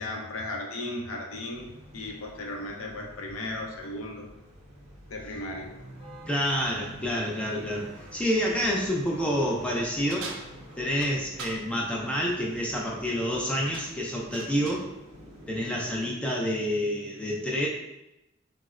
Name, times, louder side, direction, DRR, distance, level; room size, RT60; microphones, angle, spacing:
voice 1, 0.0-1.7 1.9-4.3 5.1-5.8, left 2 dB, 80° left, 0 dB, 0.6 m, -36 dB
sound 1, 1.5-16.1, equal, 35° right, 0.7 m, -48 dB
voice 2, 6.3-10.3 10.8-14.9 15.5-17.7, equal, 5° left, -3 dB, 0.3 m, -28 dB
sound 2, 10.1-11.6 13.1-13.4 13.7-14.9, right 4 dB, 70° right, 0.4 m, -42 dB
3.9 x 2.0 x 2.4 m, 0.91 s
head